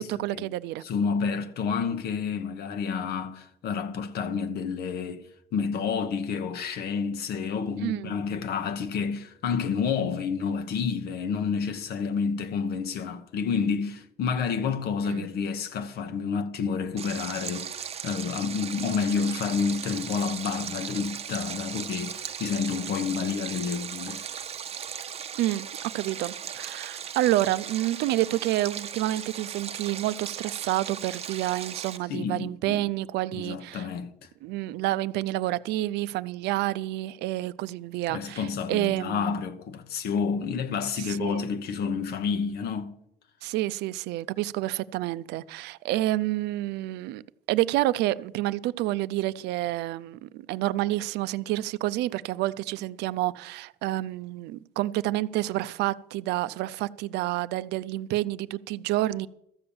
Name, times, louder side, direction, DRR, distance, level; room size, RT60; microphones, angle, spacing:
voice 1, 0.0-0.8 7.8-8.2 15.0-15.3 25.4-25.7 25.9-33.9 34.4-39.3 41.1-41.5 43.4-47.2 47.5-59.3, right 16 dB, 85° right, 0.5 m, -29 dB
voice 2, 0.8-5.3 5.5-24.2 32.1-32.8 33.3-34.1 38.1-43.0, left 6 dB, 70° left, 1.1 m, -29 dB
Stream, 17.0-32.0, right 8 dB, 35° right, 0.7 m, -37 dB
13.5 x 6.8 x 7.1 m
cardioid pair, 110°, 17 cm